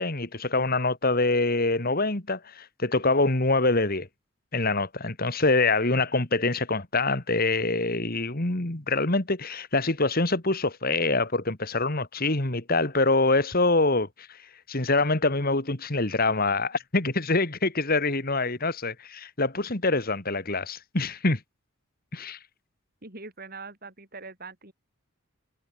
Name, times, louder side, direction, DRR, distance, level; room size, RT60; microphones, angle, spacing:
voice 1, 0.0-4.1 4.5-14.4 14.7-21.4 22.1-22.4, left 3 dB, 45° left, 2.3 m, -25 dB
voice 2, 23.0-24.7, right 3 dB, 45° right, 6.1 m, -42 dB
head